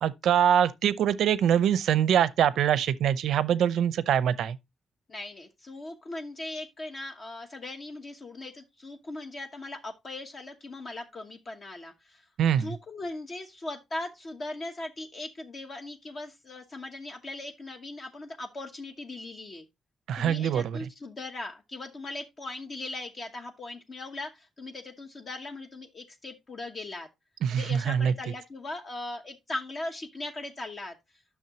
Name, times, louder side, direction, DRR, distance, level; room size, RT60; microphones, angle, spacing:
voice 1, 0.0-4.6 12.4-12.8 20.1-20.8 27.4-28.1, right 9 dB, 90° right, 0.7 m, -24 dB
voice 2, 5.1-12.3 12.6-19.6 20.2-27.1 27.5-30.9, left 2 dB, 35° left, 1.0 m, -39 dB
10.5 x 6.4 x 2.9 m
wide cardioid pair, 150°, 0 cm